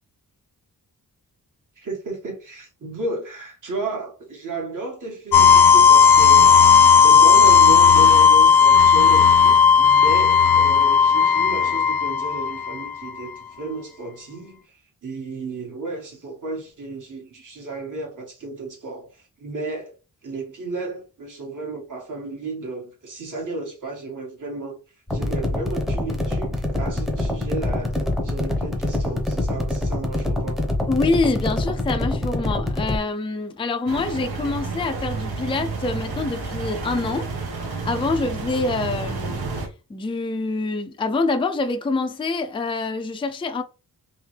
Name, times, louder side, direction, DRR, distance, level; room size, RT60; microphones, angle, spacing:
voice 1, 1.8-6.6 7.0-19.9 20.2-24.8 25.1-30.6, right 3 dB, 55° right, 1.7 m, -33 dB
sound 1, 5.3-13.1, left 6 dB, 85° left, 0.5 m, -14 dB
sound 2, 25.1-33.0, left 1 dB, ahead, 0.8 m, -25 dB
voice 2, 30.9-37.3 37.8-39.5 39.9-43.6, left 3 dB, 15° left, 0.4 m, -25 dB
sound 3, 33.9-39.7, right 4 dB, 85° right, 1.2 m, -30 dB
3.6 x 3.2 x 3.2 m
wide cardioid pair, 160°, 37 cm